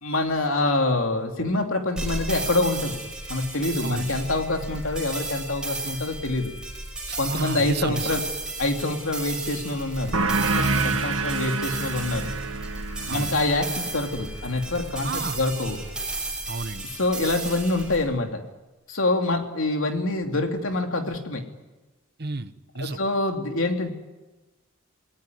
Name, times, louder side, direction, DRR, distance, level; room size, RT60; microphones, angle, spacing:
voice 1, 0.0-3.0 3.3-6.5 7.2-8.2 8.6-12.3 13.1-15.8 16.9-18.4 18.9-21.4 22.8-23.9, left 2 dB, 75° left, 4 dB, 2.9 m, -26 dB
sound 1, 2.0-18.0, right 2 dB, 5° right, 6.1 m, -34 dB
voice 2, 7.1-8.2 13.1-13.4 15.0-15.4 16.5-16.9 22.2-23.0, right 3 dB, 50° right, 12 dB, 1.1 m, -32 dB
sound 2, 10.1-15.3, right 3 dB, 70° right, 1.8 m, -28 dB
28.0 x 18.5 x 9.4 m, 1.2 s
head